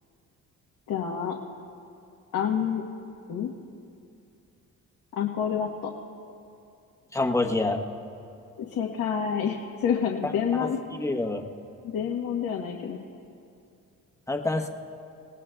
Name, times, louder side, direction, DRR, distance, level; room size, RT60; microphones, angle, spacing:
voice 1, 0.9-1.4 2.3-2.8 3.3-3.5 5.1-5.9 8.6-10.8 11.8-13.0, left 7 dB, 70° left, 0 dB, 1.2 m, -28 dB
voice 2, 7.1-7.8 10.2-10.3 10.6-11.4 14.3-14.7, left 2 dB, 10° left, 3 dB, 1.1 m, -27 dB
27.0 x 17.5 x 2.3 m, 2.6 s
cardioid pair, 95°, 34 cm